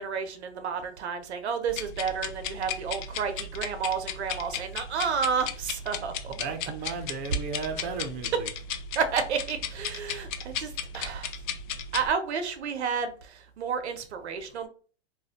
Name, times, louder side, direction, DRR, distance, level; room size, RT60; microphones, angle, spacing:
voice 1, 0.0-6.3 9.0-11.3 11.9-14.7, right 6 dB, 80° right, 8 dB, 0.6 m, -31 dB
sound 1, 1.7-12.1, left 6 dB, 50° left, 0.4 m, -36 dB
voice 2, 5.9-8.5, right 5 dB, 30° right, 5 dB, 0.5 m, -35 dB
2.4 x 2.2 x 3.4 m, 0.40 s
hypercardioid pair, 105°, 33 cm